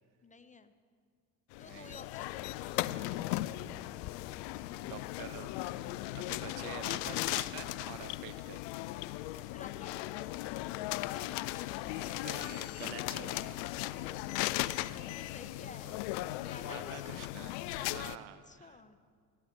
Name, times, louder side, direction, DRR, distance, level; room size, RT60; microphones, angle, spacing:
voice 1, 0.2-0.7 1.6-3.4 9.4-10.7 13.8-14.4 15.0-16.0 16.4-17.3 18.5-19.0, left 3 dB, 15° left, 11 dB, 0.7 m, -53 dB
sound 1, 1.5-18.2, left 17 dB, 65° left, 0.5 m, -37 dB
voice 2, 1.6-2.0 4.2-4.3 4.8-8.6 11.9-13.6 15.8-16.0 16.6-18.8, right 13 dB, 70° right, 14 dB, 0.7 m, -48 dB
13.5 x 12.5 x 4.5 m, 2.1 s
hypercardioid pair, 60°, 46 cm